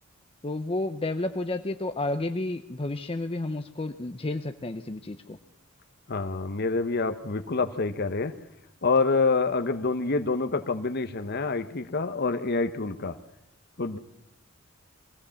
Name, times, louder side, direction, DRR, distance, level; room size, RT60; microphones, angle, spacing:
voice 1, 0.4-5.4, left 2 dB, 25° left, 7 dB, 0.7 m, -31 dB
voice 2, 6.1-8.4 8.8-13.2 13.8-14.0, left 3 dB, 50° left, 8 dB, 1.0 m, -27 dB
23.0 x 16.0 x 7.1 m, 0.79 s
head